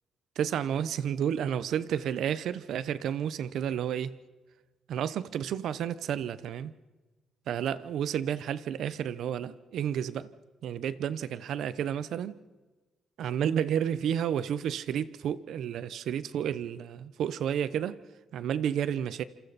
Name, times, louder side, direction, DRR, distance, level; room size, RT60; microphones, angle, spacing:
voice 1, 0.4-4.2 4.9-6.7 7.5-10.3 10.6-12.3 13.2-18.0 18.3-19.2, right 9 dB, 75° right, 1.0 m, -31 dB
27.5 x 26.5 x 4.3 m
cardioid pair, 90°, 0 cm